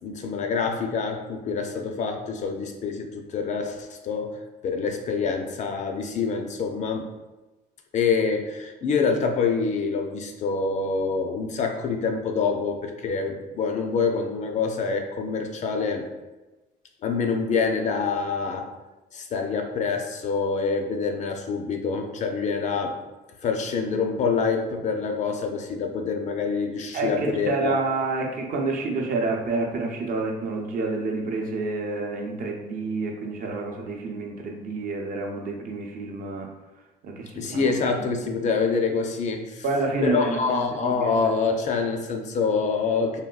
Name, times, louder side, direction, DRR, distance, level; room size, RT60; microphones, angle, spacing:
voice 1, 0.0-7.1 7.9-16.1 17.0-18.7 19.1-23.0 23.4-27.8 37.3-39.6 40.0-43.2, left 5 dB, 45° left, 4 dB, 0.4 m, -26 dB
voice 2, 26.9-36.5 37.0-38.1 39.6-41.2, right 3 dB, 55° right, 1 dB, 0.6 m, -28 dB
3.5 x 2.2 x 2.3 m, 1.1 s
cardioid pair, 110°, 17 cm